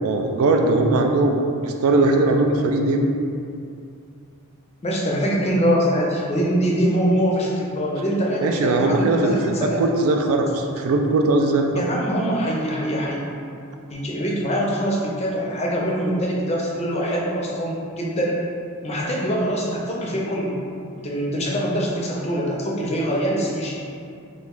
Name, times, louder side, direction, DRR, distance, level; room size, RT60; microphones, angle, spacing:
voice 1, 0.0-3.1 8.4-11.9, right 2 dB, 65° right, 3 dB, 0.3 m, -20 dB
voice 2, 4.8-9.9 11.7-13.2 13.9-18.4 18.8-20.6 20.9-23.8, equal, 30° left, -3 dB, 0.5 m, -23 dB
3.0 x 2.5 x 3.6 m, 2.5 s
head